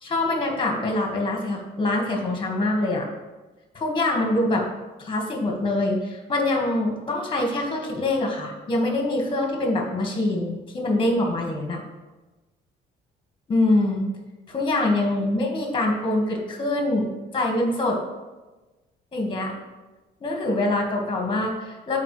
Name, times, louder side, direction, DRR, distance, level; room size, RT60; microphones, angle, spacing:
voice 1, 0.0-3.1 3.7-4.6 5.0-11.8 13.5-14.0 14.5-18.0 19.1-19.5 20.2-22.0, left 2 dB, 25° left, 1 dB, 1.7 m, -24 dB
12.0 x 4.5 x 3.3 m, 1.2 s
cardioid pair, 135°, 18 cm